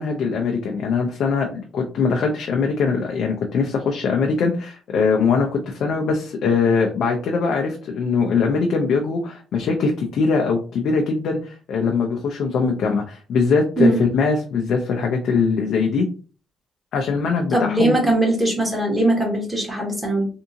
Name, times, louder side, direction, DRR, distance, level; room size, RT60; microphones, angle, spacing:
voice 1, 0.0-16.1 16.9-17.9, left 5 dB, 70° left, 1 dB, 0.6 m, -21 dB
voice 2, 17.5-20.3, right 1 dB, 10° right, -2 dB, 1.9 m, -20 dB
3.6 x 2.7 x 2.8 m, 0.37 s
cardioid pair, 90°, 0 cm